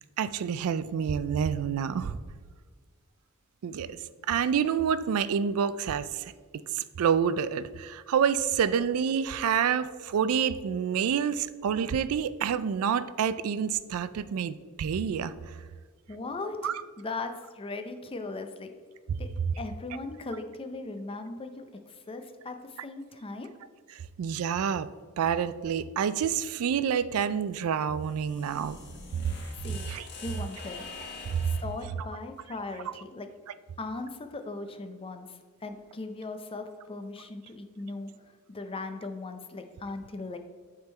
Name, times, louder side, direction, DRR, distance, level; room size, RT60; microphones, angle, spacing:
voice 1, 0.2-2.2 3.6-4.0 4.3-6.3 6.7-15.3 16.6-16.7 19.1-19.2 24.2-24.9 25.2-28.8 29.9-30.1 31.3-31.5, right 7 dB, 70° right, 14 dB, 0.3 m, -28 dB
voice 2, 16.1-16.6 17.0-18.7 19.2-19.3 19.6-21.6 22.1-23.5 29.5-29.8 30.2-30.9 31.4-33.3 33.8-35.3 35.6-38.1 38.5-40.4, left 3 dB, 25° left, 7 dB, 0.5 m, -38 dB
sound 1, 27.9-31.8, left 3 dB, 50° left, 1.2 m, -44 dB
8.7 x 3.8 x 4.3 m, 1.6 s
head